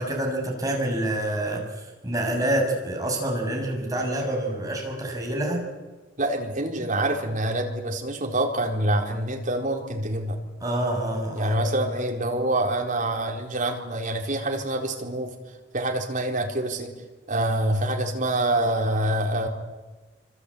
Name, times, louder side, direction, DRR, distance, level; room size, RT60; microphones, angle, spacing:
voice 1, 0.0-5.7 10.6-11.6, right 1 dB, 20° right, 0 dB, 7.0 m, -27 dB
voice 2, 6.2-10.4 11.3-15.4 15.7-16.9 17.3-19.5, right 1 dB, 45° right, 1 dB, 4.3 m, -26 dB
27.0 x 25.5 x 8.6 m, 1.2 s
head